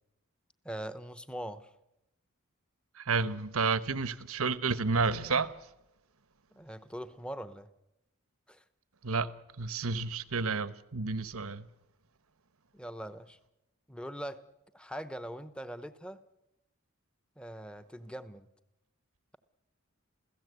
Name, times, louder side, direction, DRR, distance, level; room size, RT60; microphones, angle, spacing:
voice 1, 0.6-1.7 6.5-7.7 8.5-8.6 12.7-13.4 13.9-14.4 14.7-16.2 17.4-18.5, equal, 5° left, 0.8 m, -42 dB
voice 2, 2.9-5.6 9.0-11.7, right 4 dB, 90° right, 1.1 m, -31 dB
28.0 x 16.5 x 8.2 m
head